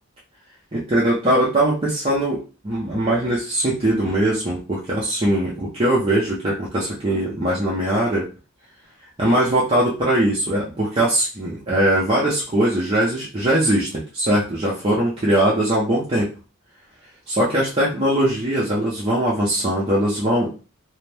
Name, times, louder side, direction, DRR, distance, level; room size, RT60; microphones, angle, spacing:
voice 1, 0.7-8.2 9.2-16.3 17.3-20.5, right 1 dB, 25° right, -6 dB, 0.6 m, -21 dB
2.6 x 2.1 x 3.3 m, 0.34 s
head